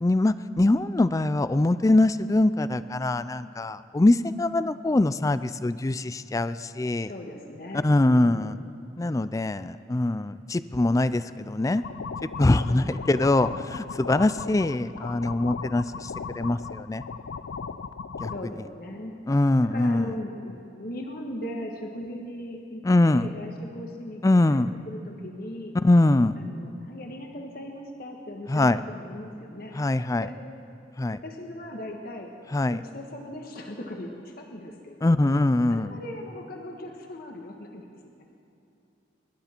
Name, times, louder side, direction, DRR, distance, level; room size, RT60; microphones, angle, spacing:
voice 1, 0.0-7.1 7.8-8.6 9.0-11.8 12.4-16.1 16.4-17.0 18.2-18.3 19.3-20.1 22.8-23.2 24.2-24.7 25.8-26.3 28.5-28.8 29.8-30.2 31.0-31.2 32.5-32.8 35.0-35.9, left 2 dB, 20° left, 14 dB, 0.3 m, -23 dB
voice 2, 7.0-8.6 12.7-13.3 18.3-19.1 19.6-22.8 23.1-24.2 24.5-25.7 26.4-29.8 30.2-30.4 31.1-32.4 32.7-35.2 35.7-37.9, left 1 dB, 50° left, 2 dB, 1.4 m, -39 dB
sound 1, 11.8-18.4, left 5 dB, 75° left, 0.5 m, -37 dB
24.5 x 12.0 x 4.4 m, 2.8 s
head